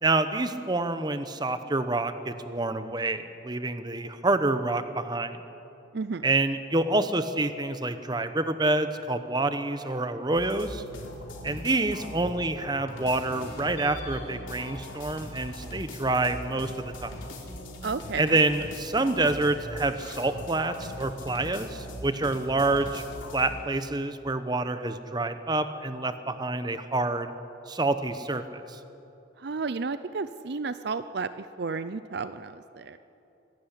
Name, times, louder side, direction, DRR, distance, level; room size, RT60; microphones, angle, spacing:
voice 1, 0.0-5.4 6.2-10.8 11.4-17.2 18.2-23.0 23.3-27.3 27.7-28.8, right 2 dB, 20° right, 10 dB, 1.0 m, -27 dB
voice 2, 5.9-6.2 17.8-18.3 29.4-33.0, right 4 dB, 60° right, 13 dB, 0.5 m, -32 dB
sound 1, 10.3-12.4 12.7-23.5, left 1 dB, 85° left, 4.1 m, -41 dB
25.0 x 12.5 x 10.0 m, 2.9 s
head